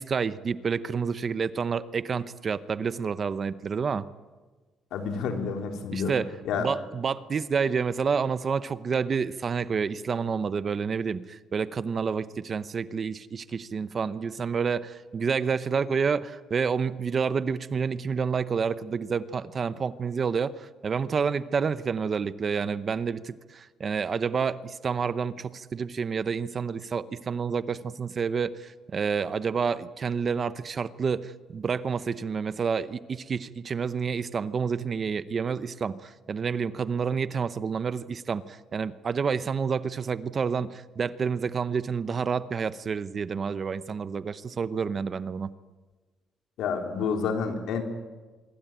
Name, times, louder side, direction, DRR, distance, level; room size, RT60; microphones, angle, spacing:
voice 1, 0.0-4.1 5.9-6.3 6.6-45.5, right 6 dB, 35° right, 14 dB, 0.8 m, -29 dB
voice 2, 4.9-6.2 6.5-6.7 46.6-47.8, left 6 dB, 80° left, 4 dB, 3.8 m, -29 dB
25.5 x 22.5 x 9.1 m, 1.3 s
cardioid pair, 155°, 0 cm